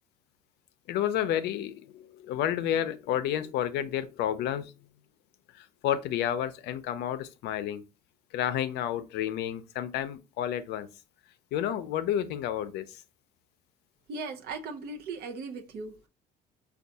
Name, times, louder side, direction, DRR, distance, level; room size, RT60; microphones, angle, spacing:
voice 1, 0.9-1.7 2.3-4.6 5.8-7.8 8.3-10.9 11.5-12.8, left 10 dB, 80° left, 0.5 m, -30 dB
voice 2, 14.1-16.1, right 3 dB, 70° right, 0.6 m, -38 dB
4.4 x 2.3 x 2.6 m
cardioid pair, 110°, 17 cm